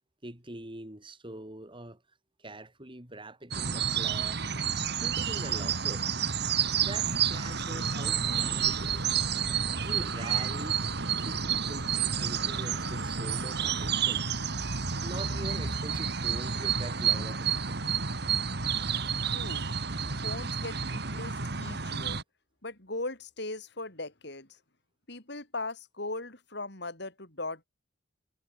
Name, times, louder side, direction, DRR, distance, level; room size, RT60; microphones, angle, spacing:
voice 1, 0.2-2.0 2.4-4.4 5.0-6.1 6.8-9.2 9.8-10.8 11.1-14.3 15.0-17.8, right 1 dB, 25° right, 5.3 m, -43 dB
sound 1, 3.5-22.2, right 7 dB, 60° right, 2.1 m, -30 dB
Breathing, 6.8-13.9, right 3 dB, 80° right, 3.8 m, -44 dB
voice 2, 19.2-19.7 20.2-22.2 22.6-24.6 25.1-27.7, left 2 dB, 65° left, 6.5 m, -39 dB
head